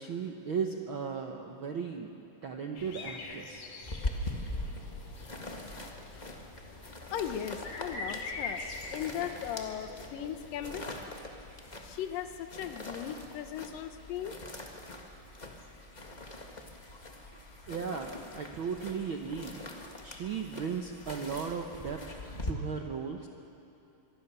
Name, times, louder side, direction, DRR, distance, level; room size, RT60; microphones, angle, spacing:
voice 1, 0.0-3.7 17.7-19.6 20.0-22.0 22.5-23.3, right 6 dB, 80° right, 3 dB, 1.1 m, -36 dB
sound 1, 2.8-11.1, left 3 dB, 65° left, 3.8 m, -44 dB
sound 2, 3.9-22.5, left 1 dB, 45° left, 0.5 m, -43 dB
voice 2, 7.1-8.6 8.9-10.8 11.8-14.3, left 9 dB, 80° left, 8 dB, 2.7 m, -37 dB
25.0 x 23.0 x 6.9 m, 2.8 s
omnidirectional pair, 3.9 m